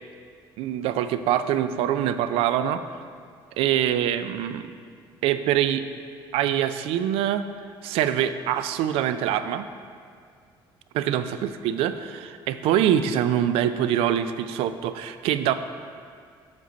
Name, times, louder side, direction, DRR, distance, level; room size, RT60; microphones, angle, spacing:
voice 1, 0.6-2.8 3.6-4.8 5.2-5.8 6.3-7.4 7.8-9.6 10.9-15.5, right 10 dB, 80° right, 11 dB, 0.4 m, -24 dB
7.4 x 6.0 x 4.0 m, 2.1 s
cardioid pair, 160°, 10 cm